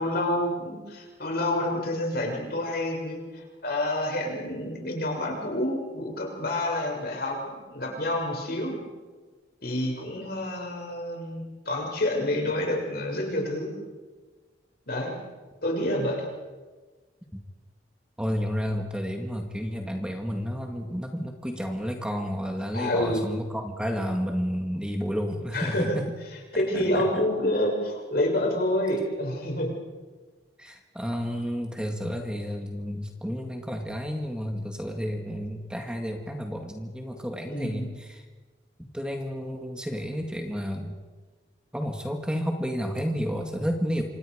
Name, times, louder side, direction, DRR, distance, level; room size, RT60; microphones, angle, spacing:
voice 1, 0.0-8.8 9.6-13.7 14.9-15.2 15.6-16.3 22.7-23.2 25.5-26.0 26.5-29.7 37.4-37.9, left 1 dB, 60° left, 0 dB, 6.9 m, -28 dB
voice 2, 18.2-26.0 26.7-27.2 30.6-38.2 38.8-41.0 41.7-44.0, equal, 5° right, 3 dB, 2.0 m, -31 dB
28.0 x 26.5 x 5.1 m, 1.3 s
head